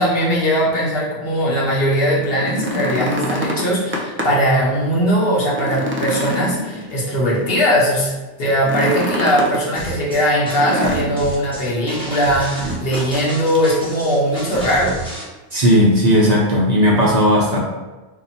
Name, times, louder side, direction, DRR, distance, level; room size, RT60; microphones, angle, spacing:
voice 1, 0.0-8.1 8.4-15.0, equal, 60° left, -5 dB, 1.2 m, -19 dB
sound 1, 2.3-4.5 4.9-5.0 5.4-7.3 8.6-9.6 10.5-11.5 12.6-13.3 13.5-13.7 14.3-14.8 16.0-16.1, left 1 dB, 20° right, 0.3 m, -26 dB
sound 2, 9.8-15.2, right 1 dB, 5° left, 0.9 m, -31 dB
voice 2, 15.5-17.6, equal, 45° right, -5 dB, 0.7 m, -15 dB
2.9 x 2.6 x 4.1 m, 1.2 s
omnidirectional pair, 1.1 m